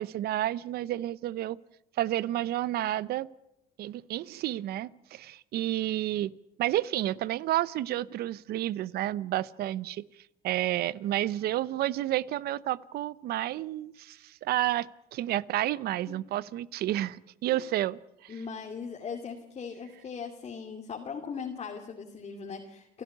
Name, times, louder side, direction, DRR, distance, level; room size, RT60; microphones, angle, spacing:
voice 1, 0.0-1.6 2.0-3.3 3.8-6.3 6.6-10.1 10.4-18.3, right 14 dB, 70° right, 21 dB, 0.8 m, -30 dB
voice 2, 18.3-23.0, left 6 dB, 40° left, 2 dB, 2.6 m, -39 dB
30.0 x 12.0 x 9.8 m, 0.85 s
cardioid pair, 95°, 17 cm